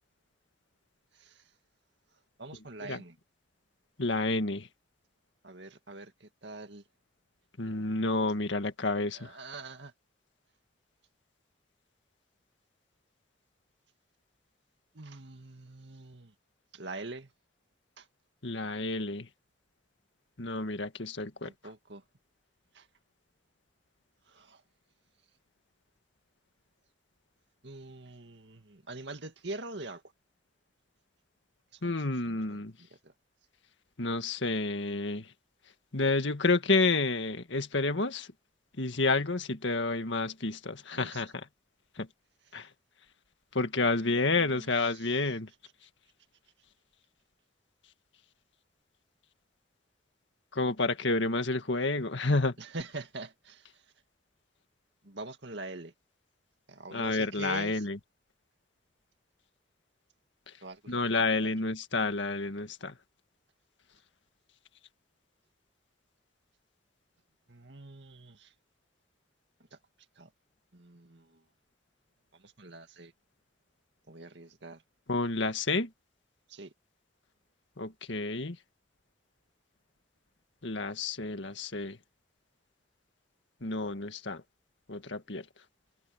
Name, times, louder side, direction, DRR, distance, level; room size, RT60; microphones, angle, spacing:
voice 1, 2.4-3.2 5.4-6.8 9.1-9.9 14.9-16.3 16.7-17.3 18.0-18.1 21.4-22.0 22.7-22.9 24.3-24.6 27.6-30.0 31.7-33.1 40.9-41.2 43.9-45.4 52.6-53.8 55.0-55.9 56.7-57.9 60.6-61.5 67.5-68.5 70.2-70.3 70.7-71.4 72.3-73.1 74.1-74.8 76.5-76.7, right 2 dB, 65° right, 2.2 m, -44 dB
voice 2, 4.0-4.7 7.6-9.3 18.4-19.3 20.4-21.5 31.8-32.7 34.0-35.2 35.9-38.3 38.8-41.3 42.0-42.1 42.5-42.7 43.6-45.5 50.5-52.5 56.9-58.0 60.9-62.9 75.1-75.9 77.8-78.6 80.6-82.0 83.6-84.4 84.9-85.4, left 3 dB, 70° left, 1.8 m, -29 dB
head